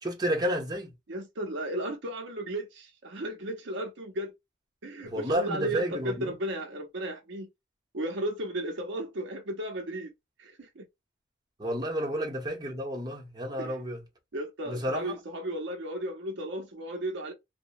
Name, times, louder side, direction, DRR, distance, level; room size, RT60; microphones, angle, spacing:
voice 1, 0.0-0.9 5.0-6.3 11.6-14.0 14.7-15.1, equal, 20° right, 1.0 m, -31 dB
voice 2, 1.1-4.3 4.8-7.5 7.9-10.1 10.4-10.8 13.6-13.8 14.3-17.3, right 1 dB, 65° right, 0.7 m, -34 dB
2.8 x 2.2 x 2.5 m
head